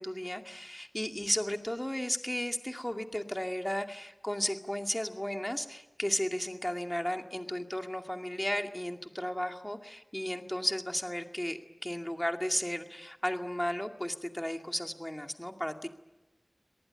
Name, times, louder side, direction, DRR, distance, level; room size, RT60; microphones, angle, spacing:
voice 1, 0.0-15.9, equal, 15° left, 4 dB, 2.3 m, -34 dB
25.5 x 19.0 x 9.8 m, 1.0 s
wide cardioid pair, 60°, 0 cm